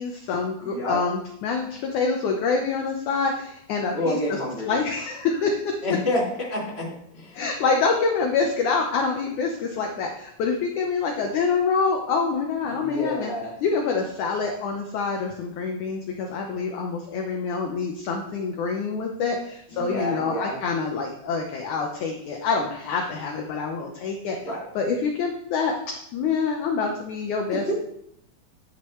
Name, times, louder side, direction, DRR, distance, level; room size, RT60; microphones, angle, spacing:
voice 1, 0.0-4.4 4.7-5.8 7.3-13.3 13.6-24.4 24.8-27.6, left 4 dB, 70° left, 2 dB, 2.1 m, -26 dB
voice 2, 0.6-1.0 3.9-4.7 5.8-6.9 7.1-7.4 12.6-13.5 19.7-20.6 24.4-24.7 27.5-27.7, left 1 dB, 15° left, -5 dB, 2.8 m, -28 dB
11.0 x 10.0 x 3.2 m, 0.74 s
omnidirectional pair, 4.4 m